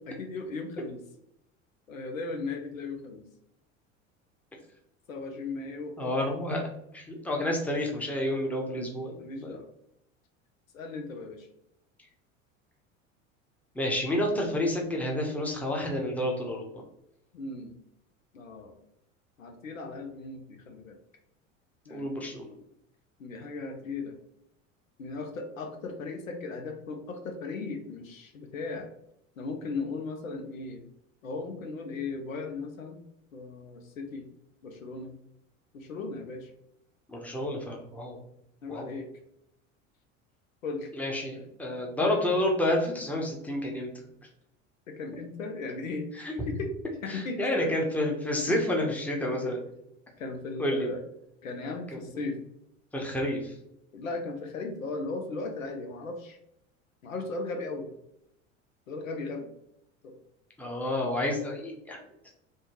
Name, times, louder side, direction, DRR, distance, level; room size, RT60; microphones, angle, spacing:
voice 1, 0.1-1.0 1.9-3.2 5.1-6.1 8.7-9.7 10.7-11.5 17.3-17.8 18.3-18.8 19.4-21.0 21.9-22.3 23.2-24.1 25.0-28.9 29.4-30.8 31.2-33.0 33.3-34.3 34.6-35.1 35.7-36.5 38.6-39.1 40.6-40.9 44.9-46.7 47.0-47.7 48.5-48.6 49.4-49.6 50.2-51.0 51.4-52.4 53.9-56.4 57.0-57.9 58.9-59.5 60.0-60.2, left 3 dB, 90° left, 5 dB, 0.5 m, -37 dB
voice 2, 6.0-6.7 6.9-9.6 13.7-16.8 21.9-22.5 37.1-38.2 38.7-38.9 40.9-43.9 46.2-46.3 47.1-49.6 50.6-50.9 52.9-53.5 60.6-62.0, left 1 dB, 5° left, -1 dB, 0.7 m, -29 dB
3.3 x 2.1 x 2.9 m, 0.79 s
hypercardioid pair, 75°, 39 cm